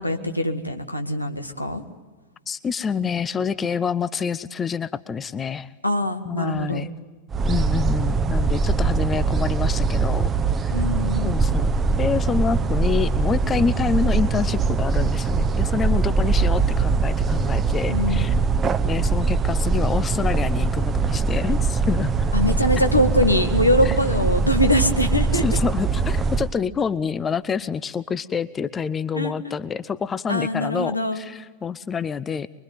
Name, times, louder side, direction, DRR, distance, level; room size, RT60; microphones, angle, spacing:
voice 1, 0.0-1.8 5.8-6.9 10.7-11.3 17.9-18.3 22.3-25.4 29.1-29.6 30.3-31.2, left 1 dB, 85° left, 6 dB, 1.8 m, -23 dB
voice 2, 2.5-5.7 6.2-6.9 7.5-10.3 10.6-10.8 11.2-18.3 18.8-22.3 23.8-24.0 25.3-32.5, left 6 dB, 20° left, 17 dB, 0.7 m, -27 dB
sound 1, 7.3-26.5, right 4 dB, 20° right, 0.9 m, -22 dB
24.5 x 23.0 x 9.3 m, 1.3 s
figure-of-eight pair, 90°, 0 cm